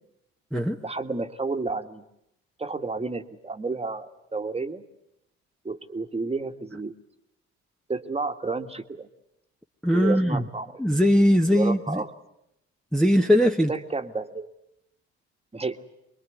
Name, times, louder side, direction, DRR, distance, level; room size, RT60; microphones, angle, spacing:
voice 1, 0.8-2.0 2.6-4.8 5.7-6.9 7.9-9.1 9.9-10.8 11.5-12.1 13.7-14.5 15.5-15.8, right 3 dB, 20° right, 7 dB, 1.8 m, -31 dB
voice 2, 9.8-10.4 10.8-12.0 12.9-13.7, equal, ahead, 1 dB, 1.2 m, -20 dB
24.5 x 22.0 x 9.4 m, 0.82 s
hypercardioid pair, 60°, 33 cm